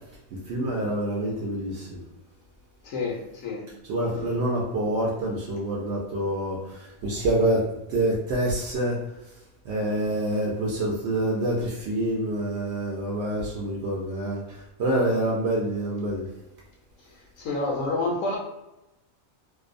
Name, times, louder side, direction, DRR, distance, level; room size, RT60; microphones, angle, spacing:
voice 1, 0.3-2.0 3.9-7.6 7.9-9.0 9.6-16.3, right 1 dB, 65° right, -3 dB, 0.7 m, -27 dB
voice 2, 2.8-3.6 17.4-18.4, left 2 dB, 70° left, -1 dB, 0.9 m, -28 dB
2.6 x 2.1 x 2.5 m, 0.92 s
omnidirectional pair, 1.5 m